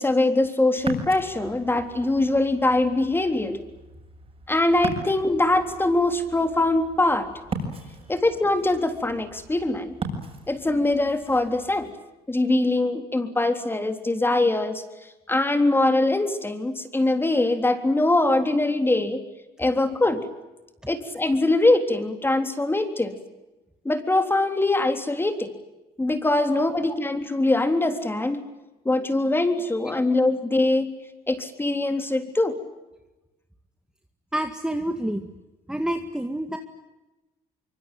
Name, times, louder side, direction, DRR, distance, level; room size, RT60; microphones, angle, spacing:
voice 1, 0.0-3.6 4.5-7.3 8.1-10.0 10.5-11.9 12.3-14.8 15.3-19.2 19.6-20.3 20.9-23.2 23.9-25.5 26.0-28.4 28.9-30.9 31.3-32.6, left 2 dB, 15° left, 8 dB, 3.5 m, -22 dB
Ocean, 0.8-11.9, right 2 dB, 35° right, 7.6 m, -38 dB
voice 2, 34.3-35.3 35.7-36.6, right 1 dB, 5° right, 6 dB, 2.0 m, -28 dB
25.0 x 24.5 x 9.1 m, 1.0 s
cardioid pair, 110°, 17 cm